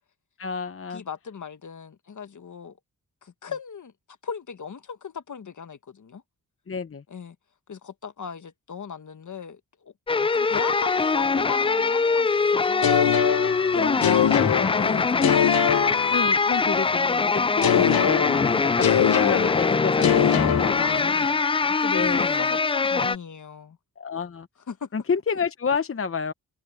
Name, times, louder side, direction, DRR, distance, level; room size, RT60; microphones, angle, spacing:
voice 1, 0.4-1.0 6.7-7.0 13.7-14.5 16.1-21.3 21.9-22.5 24.0-24.5 24.9-26.3, left 5 dB, 40° left, 0.9 m, -30 dB
voice 2, 0.9-2.8 3.2-3.9 4.2-6.2 7.1-7.3 7.7-9.9 10.3-13.1 13.7-14.4 14.8-15.8 20.8-23.8 24.7-24.9, left 6 dB, 55° left, 1.4 m, -37 dB
sound 1, 10.1-23.2, left 4 dB, 15° left, 0.3 m, -23 dB
sound 2, 12.8-16.8 17.6-21.5, left 9 dB, 80° left, 0.8 m, -24 dB
cardioid pair, 65°, 36 cm